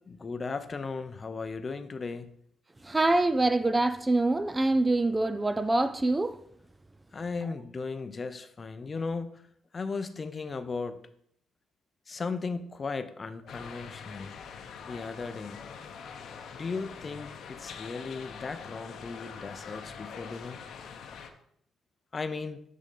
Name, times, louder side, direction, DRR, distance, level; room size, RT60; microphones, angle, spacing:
voice 1, 0.0-2.3 7.1-9.4 9.7-11.0 12.1-14.4 14.8-15.6 16.5-20.6 22.1-22.6, left 4 dB, 35° left, 0.5 m, -36 dB
voice 2, 2.8-6.4, right 2 dB, 15° right, 0.3 m, -25 dB
sound 1, 13.5-21.3, left 6 dB, 70° left, 0.7 m, -44 dB
10.0 x 3.7 x 3.8 m
cardioid pair, 90°, 0 cm